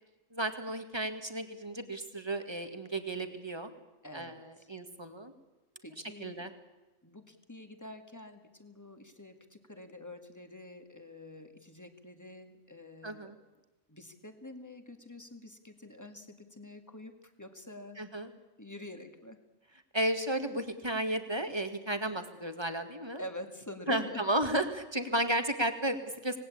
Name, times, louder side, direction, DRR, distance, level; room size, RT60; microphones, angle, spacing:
voice 1, 0.3-3.7 4.1-5.3 6.2-6.5 13.0-13.4 18.0-18.3 19.9-23.2 23.9-26.4, right 1 dB, 20° right, 7 dB, 2.0 m, -33 dB
voice 2, 4.0-4.7 5.8-6.5 7.0-13.3 13.9-18.0 18.6-19.4 23.2-24.2, left 1 dB, 15° left, 7 dB, 2.1 m, -47 dB
26.5 x 19.0 x 8.6 m, 1.1 s
omnidirectional pair, 1.4 m